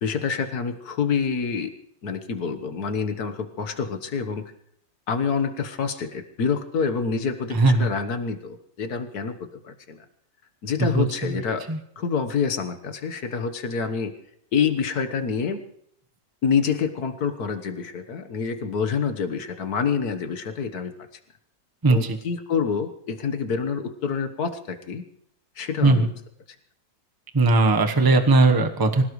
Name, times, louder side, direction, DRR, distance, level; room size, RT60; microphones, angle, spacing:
voice 1, 0.0-1.7 2.0-4.4 5.1-9.4 9.6-10.0 10.6-11.6 12.0-14.1 14.5-15.6 16.4-20.9 21.9-25.0 25.6-26.1, left 6 dB, 55° left, 8 dB, 1.7 m, -27 dB
voice 2, 7.5-7.9 10.8-11.0 11.7-11.8 21.8-22.0 25.8-26.1 27.3-29.0, right 3 dB, 15° right, 5 dB, 0.9 m, -18 dB
25.5 x 17.0 x 3.2 m, 0.71 s
omnidirectional pair, 2.0 m